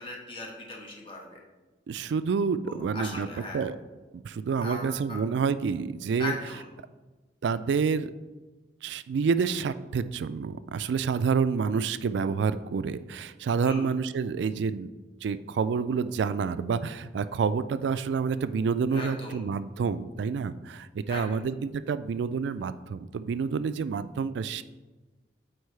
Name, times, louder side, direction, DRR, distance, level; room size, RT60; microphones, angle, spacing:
voice 1, 0.0-1.4 2.6-3.6 4.6-5.2 6.2-6.6 13.6-13.9 18.9-19.4 21.1-21.4, left 2 dB, 30° left, -1 dB, 1.2 m, -38 dB
voice 2, 1.9-3.8 4.1-6.3 7.4-8.1 8.8-14.9 15.2-24.6, right 5 dB, 70° right, 14 dB, 0.3 m, -28 dB
8.0 x 4.6 x 3.2 m, 1.2 s
head